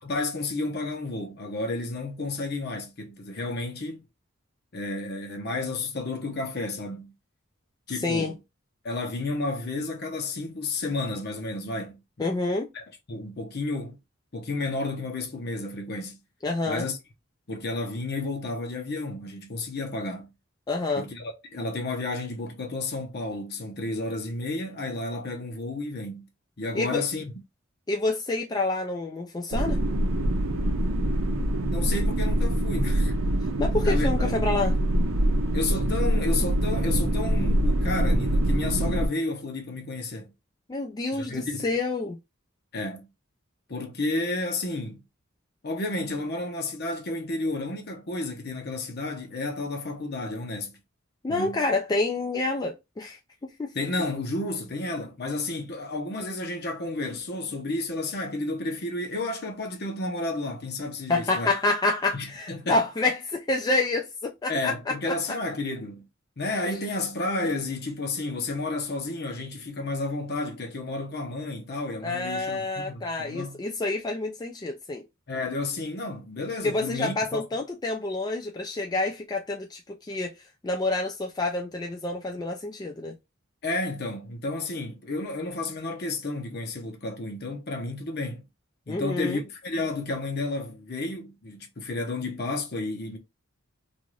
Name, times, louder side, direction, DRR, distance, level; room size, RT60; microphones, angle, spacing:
voice 1, 0.0-4.0 4.7-7.1 7.9-8.3 8.8-11.9 12.7-14.0 14.3-16.2 16.7-17.0 17.5-20.3 21.0-26.3 26.6-27.3 31.7-33.1 33.8-34.4 35.5-40.3 41.1-41.7 42.7-43.1 43.7-45.0 45.6-50.7 51.3-51.6 53.7-61.5 62.1-62.8 64.5-66.0 66.4-73.6 75.3-77.5 83.6-88.4 88.9-93.2, left 2 dB, 55° left, 0.8 m, -31 dB
voice 2, 7.9-8.3 12.2-12.7 16.4-16.9 20.7-21.1 26.7-27.0 27.9-29.8 33.6-34.7 40.7-42.2 51.2-53.8 61.1-65.1 72.0-75.0 76.6-80.3 80.6-83.2 88.9-89.4, left 2 dB, 20° left, 0.3 m, -28 dB
sound 1, 29.5-39.1, right 1 dB, 80° right, 0.6 m, -24 dB
2.6 x 2.4 x 3.1 m
head